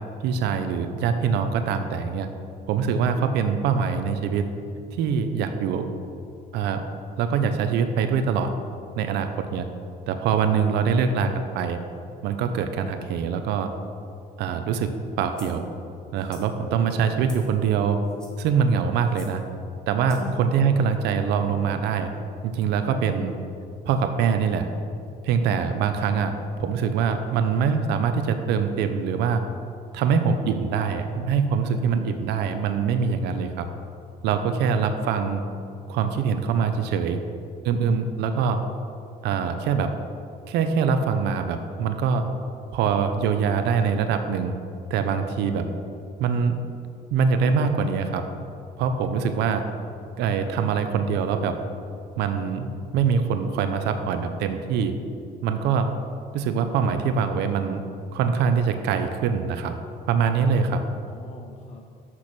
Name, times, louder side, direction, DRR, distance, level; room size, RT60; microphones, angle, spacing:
voice 1, 0.2-2.3 2.7-4.5 5.0-5.9 6.5-6.8 7.2-8.5 9.0-9.7 10.1-11.8 12.2-13.7 14.4-14.9 15.2-15.7 16.1-18.0 18.4-19.4 19.9-22.1 22.4-23.3 23.8-24.7 25.2-26.3 26.6-29.4 29.9-33.7 34.2-35.4 35.9-37.2 37.6-38.6 39.2-39.9 40.5-42.2 42.7-44.5 44.9-45.7 46.2-46.6 47.1-48.2 48.8-49.6 50.2-51.5 52.2-54.9 55.4-55.9 56.3-57.8 58.1-59.7 60.1-60.8, right 6 dB, 85° right, 8 dB, 0.6 m, -23 dB
sound 1, 15.3-15.6 16.2-16.5 17.3-17.6 18.0-18.5 19.1-19.4 20.1-20.3, equal, 5° left, 1.4 m, -47 dB
voice 2, 20.2-20.8 60.4-61.9, left 4 dB, 40° left, 2 dB, 0.6 m, -44 dB
6.2 x 6.0 x 6.0 m, 2.4 s
cardioid pair, 110°, 17 cm